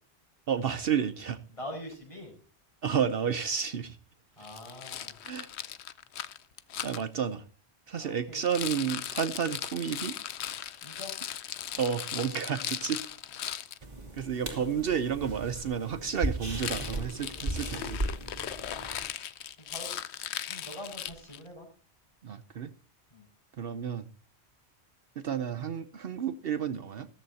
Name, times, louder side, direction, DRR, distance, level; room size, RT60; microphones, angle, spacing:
voice 1, 0.5-1.4 2.8-4.0 5.2-5.5 6.8-7.4 7.9-10.2 11.8-13.0 14.1-18.0 22.2-22.7 23.6-24.0 25.2-27.1, right 7 dB, 60° right, 0.9 m, -31 dB
voice 2, 1.5-2.3 4.4-5.2 8.0-8.4 10.8-11.1 14.4-14.7 18.0-18.1 19.7-19.9 20.5-21.7 23.1-23.3, equal, 30° left, 5.6 m, -43 dB
Rattle, 4.4-7.0 8.4-13.8 16.5-21.5, left 10 dB, 75° left, 1.0 m, -38 dB
sound 1, 13.8-19.0, right 1 dB, 40° right, 2.7 m, -36 dB
14.0 x 14.0 x 2.8 m
omnidirectional pair, 1.1 m